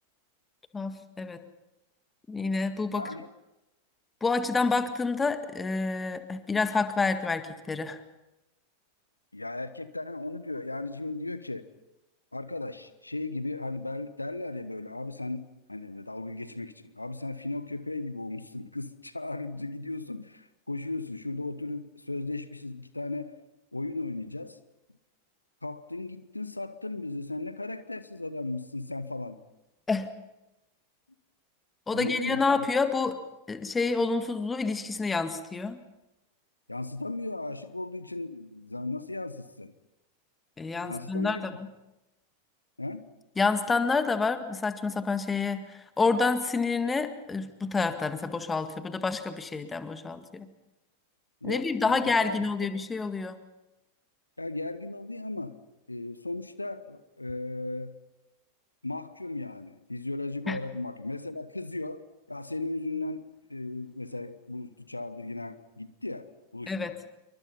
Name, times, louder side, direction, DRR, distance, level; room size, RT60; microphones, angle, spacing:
voice 1, 0.7-1.4 2.3-3.1 4.2-8.0 29.9-30.2 31.9-33.2 33.5-35.8 40.6-41.7 43.4-50.5 51.4-53.4 60.5-60.6 66.7-67.0, left 4 dB, 15° left, 10 dB, 1.8 m, -28 dB
voice 2, 2.9-3.3 9.3-11.6 12.3-15.4 15.7-23.3 23.7-24.6 25.6-29.4 31.9-32.7 36.7-39.7 40.8-41.4 42.8-43.1 51.4-52.4 54.4-55.6 55.9-57.9 58.8-62.0 62.3-63.2 63.5-66.9, left 2 dB, 85° left, 14 dB, 1.1 m, -36 dB
28.0 x 24.0 x 5.6 m, 0.95 s
figure-of-eight pair, 90°, 0 cm